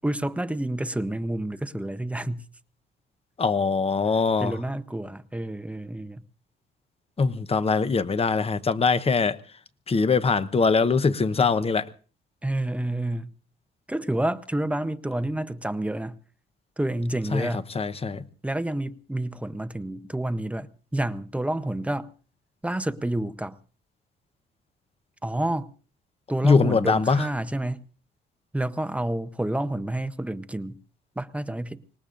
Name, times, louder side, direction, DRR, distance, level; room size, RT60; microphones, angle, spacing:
voice 1, 0.0-2.5 4.4-6.2 12.4-13.3 13.9-16.2 16.8-17.7 18.4-20.7 20.9-22.1 22.6-23.6 25.2-25.7 26.3-27.9 28.5-30.8 31.2-31.8, right 1 dB, 5° right, 0.7 m, -29 dB
voice 2, 3.4-4.6 7.2-9.4 9.9-11.8 17.3-17.5 17.7-18.2 26.4-27.3, left 4 dB, 30° left, 0.9 m, -22 dB
25.5 x 19.5 x 2.5 m
cardioid pair, 90°, 20 cm